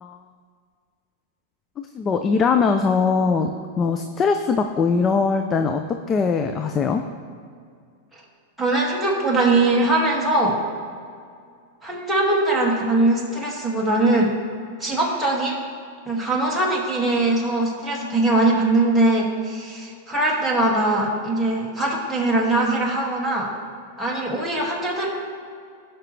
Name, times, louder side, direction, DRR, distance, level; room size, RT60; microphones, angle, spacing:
voice 1, 1.8-7.0, left 5 dB, 25° left, 6 dB, 0.5 m, -21 dB
voice 2, 8.6-10.6 11.8-14.3 14.8-15.6 16.1-23.5 24.0-25.1, right 2 dB, ahead, -5 dB, 2.1 m, -21 dB
16.5 x 5.9 x 3.3 m, 2.2 s
hypercardioid pair, 130°, 0 cm